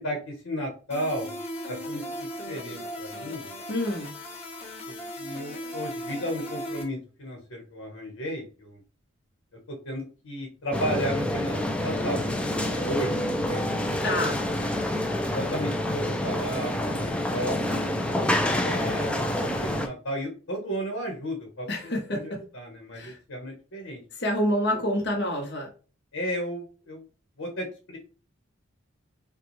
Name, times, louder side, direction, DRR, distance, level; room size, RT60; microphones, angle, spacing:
voice 1, 0.0-1.4 1.7-3.5 4.9-8.8 9.7-14.4 15.2-17.9 18.6-21.7 22.1-24.0 26.1-27.0 27.4-28.0, equal, 90° left, 2 dB, 1.2 m, -34 dB
sound 1, 0.9-6.8, equal, 30° left, 1.2 m, -37 dB
voice 2, 3.7-4.2 14.0-14.4 21.7-22.4 22.9-23.2 24.1-25.7, left 1 dB, 55° left, 0 dB, 1.2 m, -28 dB
sound 2, 10.7-19.9, left 1 dB, 5° left, 0.4 m, -27 dB
5.7 x 2.3 x 3.1 m, 0.36 s
head